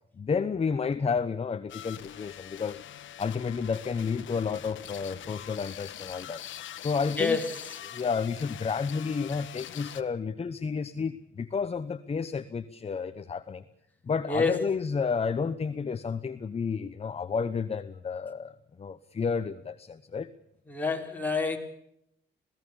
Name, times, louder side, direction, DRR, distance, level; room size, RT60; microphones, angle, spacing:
voice 1, 0.2-2.8 3.2-6.4 6.8-7.4 7.9-13.6 14.0-20.3, left 5 dB, 30° left, 11 dB, 1.0 m, -31 dB
sound 1, 1.7-10.0, left 11 dB, 70° left, 1.4 m, -43 dB
voice 2, 7.2-7.6 14.3-14.6 20.7-21.6, left 4 dB, 10° left, 1 dB, 4.6 m, -27 dB
27.0 x 17.0 x 7.2 m, 0.78 s
cardioid pair, 90°, 20 cm